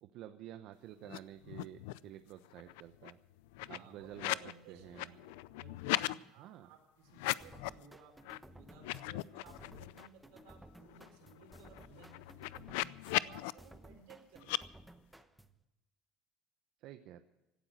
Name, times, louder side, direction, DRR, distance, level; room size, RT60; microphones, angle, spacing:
voice 1, 0.0-3.2 3.7-4.4 4.7-5.1 6.4-6.7 16.8-17.2, right 12 dB, 60° right, 9 dB, 0.8 m, -50 dB
sound 1, 1.0-1.2 1.4-2.1 2.4-4.5 4.8-6.1 7.1-7.8 8.2-8.4 8.7-10.1 10.5-10.6 10.8-13.5 14.4-14.6, left 19 dB, 85° left, 0.4 m, -38 dB
voice 2, 3.6-12.5 13.2-14.6, right 6 dB, 80° right, 4 dB, 4.4 m, -59 dB
sound 2, 7.4-15.6, right 1 dB, 5° right, 0.9 m, -57 dB
16.5 x 12.5 x 6.3 m, 0.99 s
cardioid pair, 135°, 0 cm